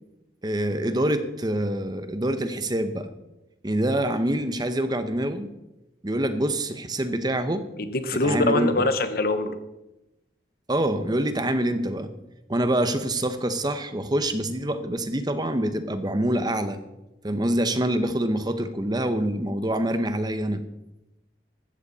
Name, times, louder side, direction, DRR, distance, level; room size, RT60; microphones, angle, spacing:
voice 1, 0.4-3.1 3.6-5.5 6.0-7.7 8.2-8.9 10.7-12.1 12.5-16.8 17.2-20.6, right 1 dB, 25° right, 10 dB, 0.9 m, -25 dB
voice 2, 7.8-9.6, left 2 dB, 55° left, 10 dB, 1.1 m, -23 dB
15.0 x 13.0 x 4.1 m, 0.95 s
head